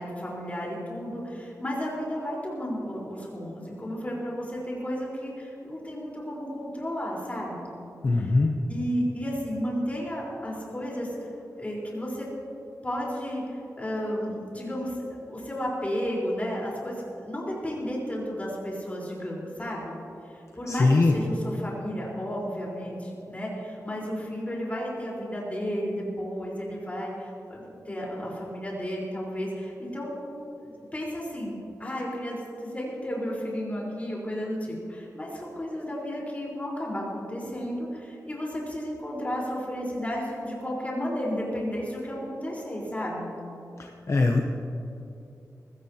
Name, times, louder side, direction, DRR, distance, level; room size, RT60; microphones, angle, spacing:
voice 1, 0.0-7.6 8.2-8.3 8.7-11.3 11.6-12.3 12.8-20.0 20.3-30.2 30.6-43.3, equal, 20° left, -4 dB, 4.2 m, -33 dB
voice 2, 8.0-8.5 20.7-21.1 44.1-44.4, left 3 dB, 50° left, 2 dB, 0.8 m, -21 dB
20.0 x 16.5 x 2.9 m, 2.7 s
wide cardioid pair, 130°, 6 cm